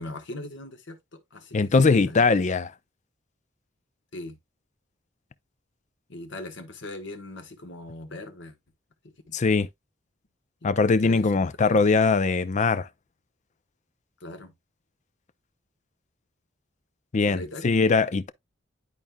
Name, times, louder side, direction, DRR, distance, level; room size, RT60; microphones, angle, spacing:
voice 1, 0.0-2.2 4.1-4.4 6.1-8.6 9.3-9.4 10.6-10.7 11.0-11.8 14.2-14.5 17.3-17.7, left 1 dB, 65° left, 1.3 m, -40 dB
voice 2, 1.5-2.7 9.3-9.7 10.6-12.9 17.1-18.3, left 4 dB, 40° left, 0.5 m, -21 dB
11.0 x 4.2 x 2.2 m
head